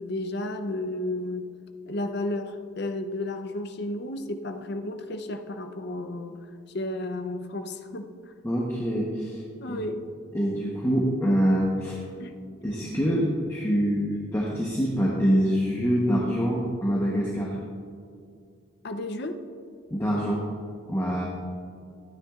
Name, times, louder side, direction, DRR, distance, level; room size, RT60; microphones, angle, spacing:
voice 1, 0.0-1.5 1.9-6.4 6.7-8.1 9.6-10.0 12.2-12.3 18.8-19.4, left 1 dB, 50° left, 7 dB, 0.6 m, -32 dB
voice 2, 8.4-9.4 9.7-9.8 10.3-12.0 12.6-17.6 19.9-20.4 20.9-21.3, equal, 10° left, -4 dB, 0.8 m, -25 dB
13.0 x 9.5 x 2.4 m, 2.3 s
head